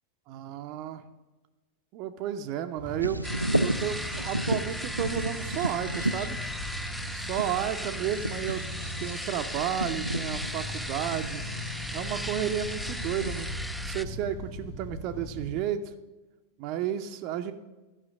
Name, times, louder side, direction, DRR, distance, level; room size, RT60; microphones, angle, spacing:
voice 1, 0.3-1.0 1.9-3.2 3.6-6.4 7.1-8.6 9.0-11.4 11.9-13.5 13.8-15.9 16.6-17.5, right 10 dB, 40° right, 7 dB, 0.6 m, -32 dB
sound 1, 2.8-15.6, equal, 75° left, 3.5 m, -39 dB
Bird vocalization bird call bird song, 3.0-13.5, right 1 dB, 90° right, 0.3 m, -34 dB
sound 2, 3.2-14.0, equal, ahead, 0.4 m, -37 dB
12.5 x 5.6 x 6.2 m, 1.2 s
figure-of-eight pair, 90°, 0 cm